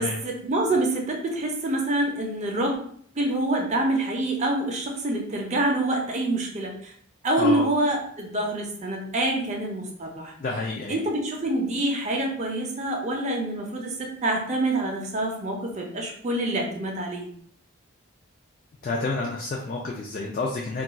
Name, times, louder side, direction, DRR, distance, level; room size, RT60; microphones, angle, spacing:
voice 1, 0.0-2.8 3.2-6.9 7.2-10.3 10.9-17.3, right 1 dB, 30° right, 1 dB, 0.5 m, -26 dB
voice 2, 10.4-11.0 18.8-20.8, left 3 dB, 40° left, -1 dB, 0.3 m, -29 dB
2.3 x 2.3 x 3.9 m, 0.62 s
head